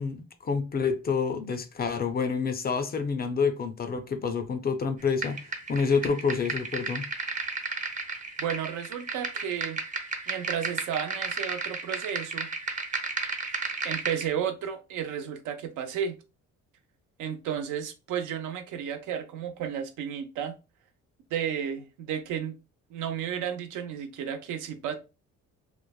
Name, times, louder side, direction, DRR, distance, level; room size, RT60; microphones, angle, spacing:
voice 1, 0.0-5.4 5.7-7.1, left 5 dB, 30° left, 0.4 m, -28 dB
sound 1, 5.2-14.3, right 3 dB, 25° right, 0.5 m, -33 dB
voice 2, 8.4-9.8 10.3-12.5 13.8-16.1 17.2-20.6 21.3-22.6 22.9-24.9, right 8 dB, 85° right, 0.5 m, -33 dB
3.1 x 2.0 x 2.2 m
cardioid pair, 90°, 30 cm